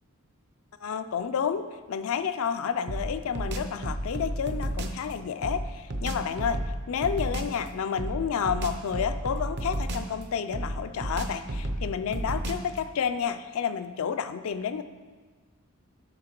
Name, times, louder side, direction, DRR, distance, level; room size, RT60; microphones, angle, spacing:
voice 1, 0.8-14.8, left 7 dB, 70° left, 10 dB, 0.4 m, -30 dB
sound 1, 2.9-5.0 5.4-7.6 8.0-10.2 10.5-12.8, right 1 dB, 55° right, 0.7 m, -32 dB
7.6 x 5.9 x 4.4 m, 1.4 s
head